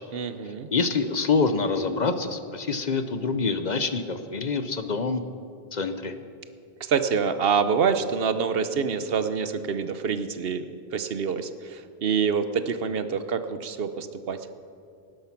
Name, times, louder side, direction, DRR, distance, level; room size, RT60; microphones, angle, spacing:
voice 1, 0.1-0.7 6.8-10.7 10.9-14.4, right 6 dB, 70° right, 11 dB, 0.9 m, -26 dB
voice 2, 0.7-5.2 5.7-6.1, left 4 dB, 50° left, 9 dB, 0.8 m, -26 dB
18.5 x 10.0 x 5.9 m, 2.5 s
omnidirectional pair, 1.0 m